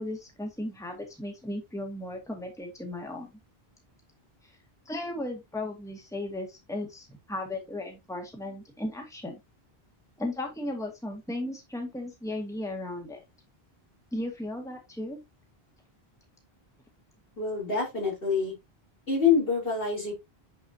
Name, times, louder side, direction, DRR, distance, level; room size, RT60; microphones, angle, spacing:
voice 1, 0.0-3.3 4.4-4.5 4.9-9.4 10.2-13.2 14.1-15.2, left 1 dB, 5° left, 1.9 m, -36 dB
voice 2, 17.4-18.5 19.1-20.1, left 5 dB, 65° left, 4.4 m, -26 dB
9.3 x 4.9 x 2.8 m
omnidirectional pair, 1.0 m